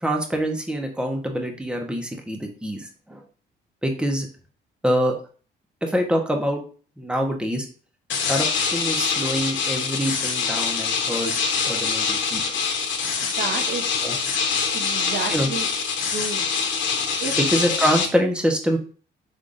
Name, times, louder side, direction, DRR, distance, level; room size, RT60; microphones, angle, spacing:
voice 1, 0.0-3.2 3.8-4.3 4.8-5.1 5.8-6.6 7.0-7.7 8.3-12.4 14.0-14.2 15.3-15.5 17.4-18.8, equal, 5° right, 2 dB, 1.0 m, -25 dB
sound 1, 8.1-18.1, left 5 dB, 70° left, 1.1 m, -24 dB
voice 2, 13.2-13.8 14.7-15.7 16.1-16.5 17.2-17.3, right 4 dB, 55° right, 5 dB, 0.8 m, -30 dB
5.2 x 3.6 x 2.6 m, 0.39 s
cardioid pair, 90°, 20 cm